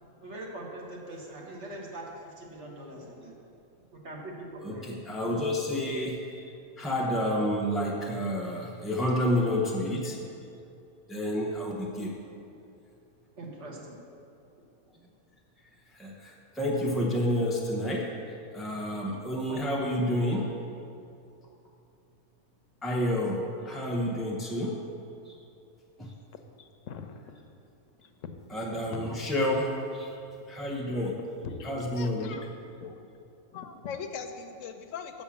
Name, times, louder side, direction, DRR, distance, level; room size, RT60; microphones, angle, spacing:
voice 1, 0.2-3.3 3.9-4.9 10.1-10.3 13.4-14.0 19.5-19.9, right 1 dB, 55° right, -2 dB, 1.6 m, -42 dB
voice 2, 4.6-6.4 6.8-10.2 11.1-12.1 15.9-18.1 18.5-20.5 22.8-24.8 25.3-25.4 26.0-26.1 28.5-30.2 30.5-31.2 31.6-32.4, left 1 dB, ahead, -4 dB, 0.3 m, -29 dB
voice 3, 26.3-27.3 28.0-28.1 28.7-29.2 31.4-32.5 32.8-33.0 33.5-35.2, left 6 dB, 70° left, 7 dB, 0.9 m, -41 dB
7.1 x 5.9 x 7.1 m, 2.6 s
omnidirectional pair, 1.5 m